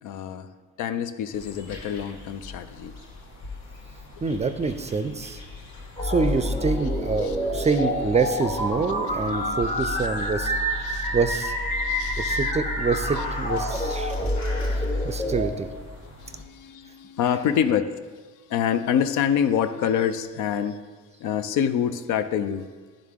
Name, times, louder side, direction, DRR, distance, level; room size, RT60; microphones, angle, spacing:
voice 1, 0.0-0.5 0.8-3.0 7.2-7.7 8.7-10.3 10.8-11.1 11.7-12.5 13.2-13.3 13.7-13.9 14.1-14.3 14.7-14.9 16.2-18.0 18.5-20.8 21.2-22.7, left 8 dB, 85° left, 10 dB, 0.5 m, -27 dB
sound 1, 1.3-16.4, left 2 dB, 65° left, 1.2 m, -43 dB
voice 2, 4.2-5.4 6.0-10.5 10.9-11.5 12.2-14.3 14.7-15.7, right 4 dB, 20° right, 9 dB, 0.4 m, -26 dB
sound 2, 6.0-15.5, equal, 25° left, 1.3 m, -27 dB
10.5 x 3.7 x 3.6 m, 1.4 s
cardioid pair, 90°, 30 cm